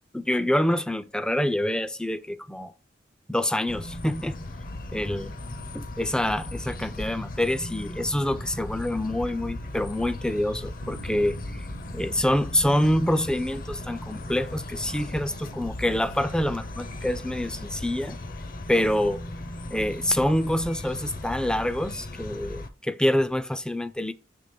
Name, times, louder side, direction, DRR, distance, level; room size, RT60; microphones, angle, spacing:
voice 1, 0.1-2.7 3.3-4.4 4.9-5.3 5.7-11.7 11.9-18.2 18.7-19.2 19.7-24.1, left 1 dB, 5° left, 0.4 m, -26 dB
sound 1, 3.7-22.7, left 1 dB, 50° left, 0.7 m, -37 dB
sound 2, 10.8-13.8, right 5 dB, 60° right, 0.5 m, -48 dB
6.8 x 3.3 x 5.1 m
head